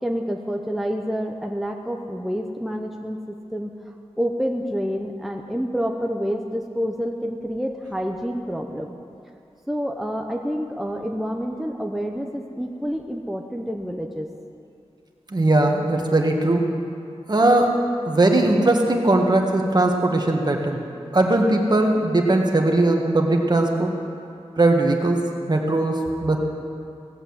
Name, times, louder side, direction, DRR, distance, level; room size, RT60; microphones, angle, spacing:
voice 1, 0.0-9.0 9.7-14.3 20.9-21.1, equal, ahead, 1 dB, 0.8 m, -28 dB
voice 2, 15.3-16.6 17.3-20.8 21.1-23.9 24.6-25.2 25.5-26.4, right 2 dB, 40° right, 2 dB, 1.6 m, -19 dB
17.5 x 7.9 x 7.9 m, 2.5 s
wide cardioid pair, 100°, 11 cm